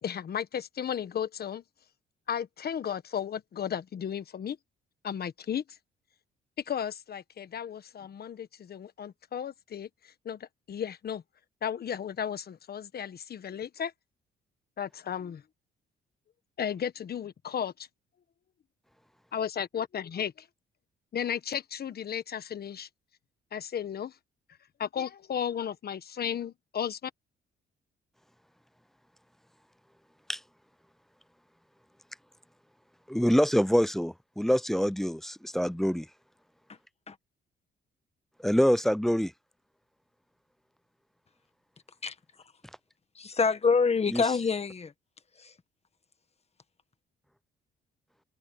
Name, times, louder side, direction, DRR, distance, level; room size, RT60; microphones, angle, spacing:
voice 1, 0.0-1.6 2.3-4.6 5.0-5.6 6.7-11.2 11.6-13.9 14.8-15.4 16.6-17.9 19.3-20.5 21.1-22.9 23.5-24.1 24.8-27.1, left 8 dB, 50° left, 1.3 m, -34 dB
voice 2, 33.1-36.1 38.4-39.3 44.1-44.2, equal, ahead, 0.5 m, -25 dB
voice 3, 43.1-44.9 45.4-45.5, left 5 dB, 30° left, 1.6 m, -26 dB
open air
cardioid pair, 90°, 20 cm